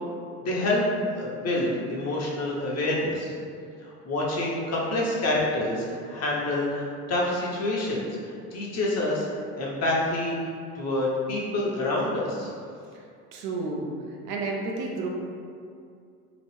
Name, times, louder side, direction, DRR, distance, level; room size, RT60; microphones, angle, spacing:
voice 1, 0.4-3.3 3.8-9.3 9.5-10.4 10.7-12.5, left 1 dB, 30° left, -4 dB, 0.8 m, -27 dB
voice 2, 13.3-13.9 14.2-15.1, right 3 dB, 70° right, -1 dB, 0.7 m, -30 dB
3.0 x 2.5 x 3.1 m, 2.3 s
hypercardioid pair, 75°, 49 cm